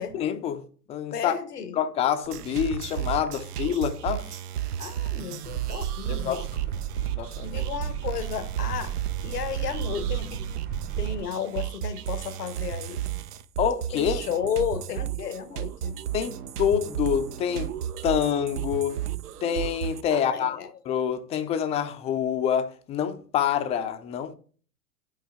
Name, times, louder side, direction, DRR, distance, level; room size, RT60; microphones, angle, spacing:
voice 1, 0.0-1.3 1.7-4.2 6.1-6.4 7.0-7.6 13.6-14.2 16.1-17.7 18.0-19.0 19.4-20.6 20.9-24.3, left 9 dB, 15° left, 0.4 m, -27 dB
voice 2, 1.1-1.8 4.8-6.5 7.4-8.9 9.2-10.4 11.0-13.0 13.9-16.0 20.1-20.7, left 7 dB, 90° left, 1.0 m, -33 dB
sound 1, 2.2-20.0, right 11 dB, 75° right, 0.7 m, -33 dB
sound 2, 5.4-11.2, right 10 dB, 55° right, 1.9 m, -35 dB
9.2 x 5.0 x 3.5 m
hypercardioid pair, 110°, 46 cm